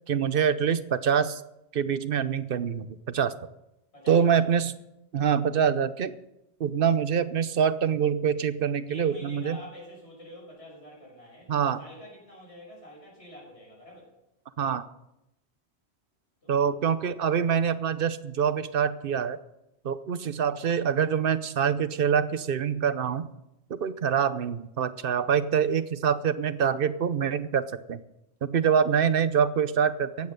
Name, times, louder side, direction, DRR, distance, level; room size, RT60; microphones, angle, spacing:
voice 1, 0.1-1.4 1.7-3.3 4.1-4.7 5.1-6.1 6.6-9.6 11.5-11.8 14.6-14.8 16.5-19.4 19.8-23.3 23.7-28.0 28.4-30.3, right 7 dB, 55° right, 13 dB, 0.9 m, -25 dB
voice 2, 3.9-4.5 8.9-14.1 16.4-16.8, equal, 80° left, -3 dB, 6.5 m, -47 dB
15.5 x 9.7 x 6.7 m, 0.88 s
omnidirectional pair, 1.1 m